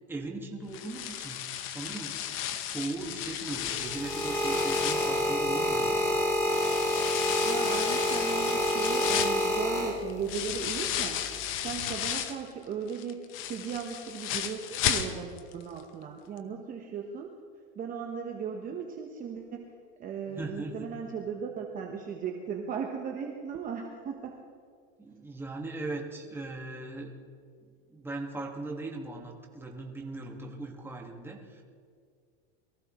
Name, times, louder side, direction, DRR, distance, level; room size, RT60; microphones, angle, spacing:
voice 1, 0.1-2.2 2.6-6.2 20.3-20.8 25.0-27.1 27.6-31.6, right 2 dB, 5° right, 0 dB, 1.7 m, -39 dB
sound 1, 0.7-6.0 6.5-12.5 12.9-15.5 15.8-15.9 16.4-16.5, left 10 dB, 40° left, 0.9 m, -34 dB
sound 2, 3.5-10.4 11.2-11.5, left 1 dB, 10° left, 3.2 m, -28 dB
voice 2, 7.2-11.2 11.6-17.3 17.7-19.7 20.0-24.4, right 6 dB, 25° right, 2 dB, 1.1 m, -37 dB
23.0 x 15.0 x 3.1 m, 2.2 s
supercardioid pair, 140°, 32 cm